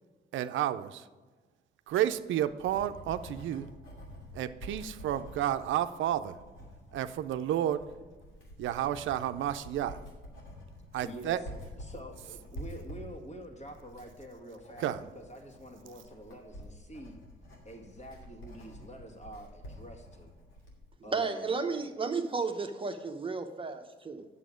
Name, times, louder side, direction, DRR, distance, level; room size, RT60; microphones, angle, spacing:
voice 1, 0.3-1.0 1.9-3.7 4.3-6.4 6.9-7.8 8.6-10.0 10.9-11.4 14.8-15.0, right 11 dB, 75° right, 10 dB, 0.5 m, -31 dB
Writing, 2.2-20.8, left 1 dB, 85° left, 2.7 m, -48 dB
voice 2, 11.0-17.2 17.6-20.3 21.0-21.6, right 1 dB, 35° left, 2 dB, 2.1 m, -47 dB
voice 3, 21.1-24.3, right 4 dB, 25° right, 5 dB, 0.8 m, -33 dB
8.3 x 7.1 x 5.0 m, 1.3 s
cardioid pair, 90°, 20 cm